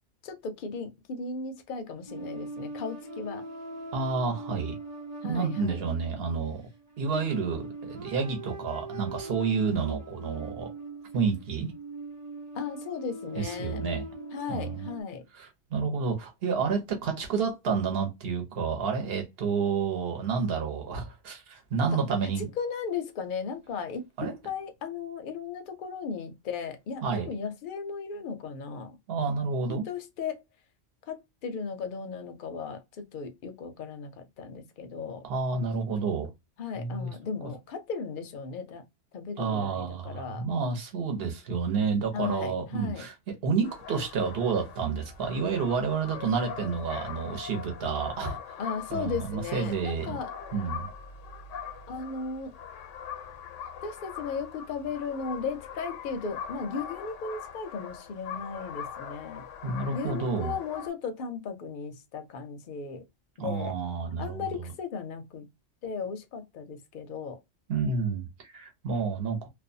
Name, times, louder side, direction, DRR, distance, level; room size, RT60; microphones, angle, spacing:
voice 1, 0.2-3.4 5.2-5.8 12.5-13.8 14.3-15.2 22.2-22.3 22.6-29.0 29.7-30.4 31.1-35.2 36.6-38.8 39.1-40.5 42.1-43.1 48.6-50.3 51.9-52.6 53.8-59.4 59.9-63.0 63.4-63.8 64.2-65.5 65.8-67.4, left 5 dB, 55° left, 0.6 m, -36 dB
sound 1, 2.1-15.0, right 2 dB, 15° right, 0.8 m, -41 dB
voice 2, 3.9-4.8 5.2-6.6 7.0-10.7 11.1-11.7 13.4-14.1 14.5-14.8 15.3-22.5 24.2-24.3 27.0-27.3 29.1-29.8 35.2-36.3 36.7-37.1 39.4-48.4 48.9-50.2 50.5-50.9 59.6-60.5 63.4-64.7 67.7-69.5, right 5 dB, 55° right, 1.0 m, -30 dB
sound 2, 43.6-60.9, left 7 dB, 85° left, 1.0 m, -42 dB
2.5 x 2.2 x 2.6 m
omnidirectional pair, 1.2 m